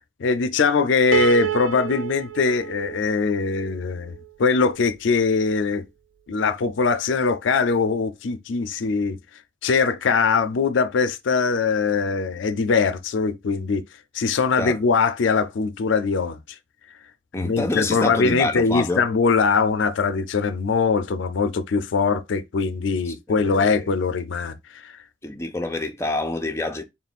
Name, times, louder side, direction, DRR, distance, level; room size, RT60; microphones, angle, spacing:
voice 1, 0.0-4.1 4.4-5.8 6.3-13.8 14.1-16.6 17.3-25.0, left 4 dB, 80° left, 0.4 m, -22 dB
Piano, 1.1-4.3, right 11 dB, 85° right, 0.4 m, -30 dB
voice 2, 17.3-19.0 23.3-23.8 25.2-26.8, left 2 dB, 15° left, 0.5 m, -27 dB
3.7 x 2.4 x 4.1 m
head